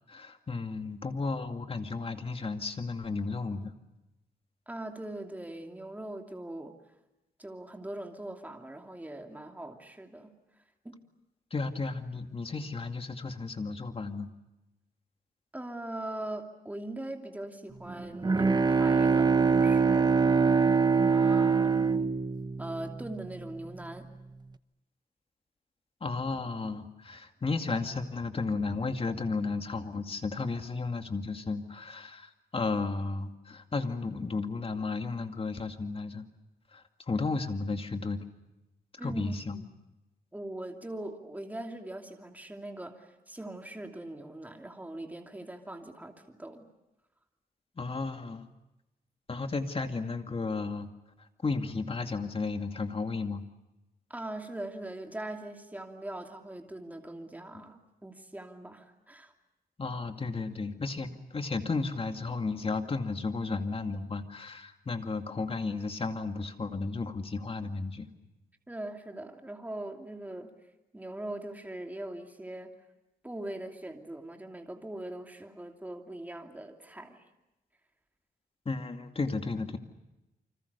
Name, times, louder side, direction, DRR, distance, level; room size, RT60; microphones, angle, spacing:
voice 1, 0.1-3.7 11.5-14.3 26.0-36.3 36.7-38.2 39.0-39.6 47.8-48.5 49.3-50.9 51.2-53.4 57.5-57.7 59.8-68.1 78.7-79.8, left 3 dB, 35° left, 6 dB, 2.3 m, -33 dB
voice 2, 4.7-6.7 7.4-10.3 10.8-11.0 15.5-20.1 21.1-22.0 22.6-24.1 39.0-39.6 40.3-46.7 54.1-59.3 68.7-70.5 70.9-72.7 73.2-77.2, right 1 dB, 10° right, 3 dB, 2.8 m, -41 dB
Bowed string instrument, 17.9-23.4, right 5 dB, 25° right, 0.9 m, -24 dB
29.0 x 25.5 x 6.9 m, 0.96 s
wide cardioid pair, 110°, 16 cm